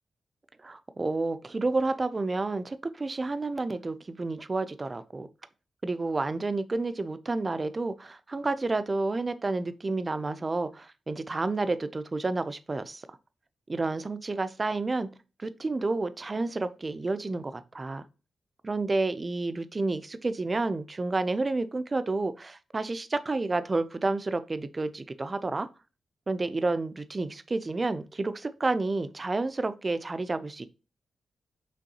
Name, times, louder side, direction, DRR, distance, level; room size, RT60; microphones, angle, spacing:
voice 1, 0.6-5.3 5.8-13.2 13.7-15.1 15.4-18.0 18.6-25.7 26.3-30.7, right 3 dB, 30° right, 0.4 m, -30 dB
5.2 x 3.1 x 2.8 m
wide cardioid pair, 115°, 0 cm